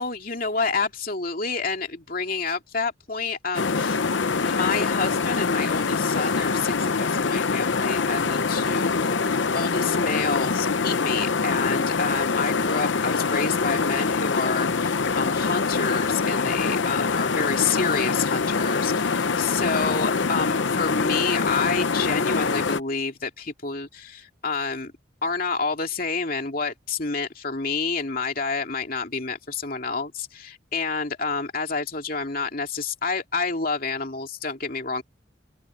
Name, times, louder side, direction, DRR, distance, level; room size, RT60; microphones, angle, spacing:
voice 1, 0.0-4.1 4.4-24.9 25.2-35.0, left 4 dB, 45° left, 2.6 m, -29 dB
sound 1, 3.5-22.8, left 4 dB, 70° left, 0.7 m, -24 dB
open air
head